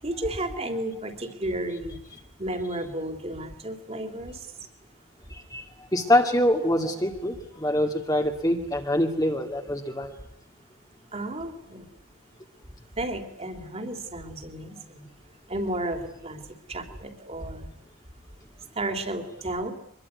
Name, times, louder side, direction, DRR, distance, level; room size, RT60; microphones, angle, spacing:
voice 1, 0.0-2.0 2.4-4.5 11.1-11.9 13.0-15.1 15.5-16.4 16.7-17.7 18.7-19.7, right 1 dB, 30° right, 5 dB, 3.2 m, -32 dB
voice 2, 5.3-10.1, left 1 dB, 15° left, 4 dB, 2.2 m, -25 dB
24.5 x 22.0 x 9.5 m, 0.66 s
head